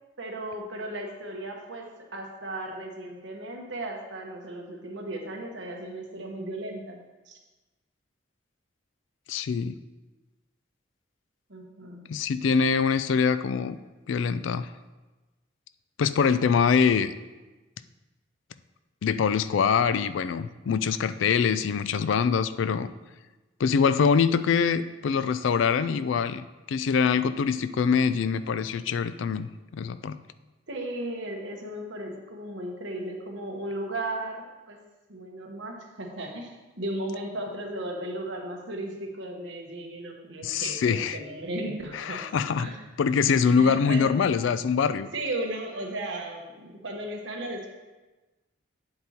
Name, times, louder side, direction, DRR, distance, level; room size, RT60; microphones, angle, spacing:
voice 1, 0.2-1.8 2.1-7.0 7.3-7.4 11.5-12.0 30.7-34.8 35.1-42.2 42.6-42.8 43.4-44.1 45.1-47.7, right 1 dB, 75° right, 1 dB, 1.2 m, -35 dB
voice 2, 9.3-9.8 12.1-13.8 14.1-14.7 16.0-17.1 19.0-22.9 23.6-30.2 40.4-41.2 41.9-42.7 43.0-45.1, left 6 dB, 75° left, 13 dB, 0.3 m, -24 dB
8.5 x 7.7 x 2.9 m, 1.2 s
head